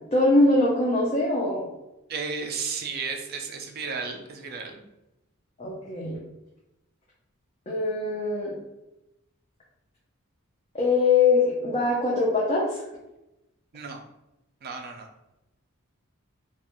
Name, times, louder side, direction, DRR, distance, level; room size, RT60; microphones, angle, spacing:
voice 1, 0.1-1.7 5.6-6.2 7.7-8.5 10.7-12.8, left 3 dB, 30° left, -5 dB, 0.5 m, -22 dB
voice 2, 2.1-4.8 13.7-14.0 14.6-15.1, right 5 dB, 45° right, 4 dB, 0.4 m, -33 dB
2.4 x 2.3 x 2.9 m, 0.92 s
head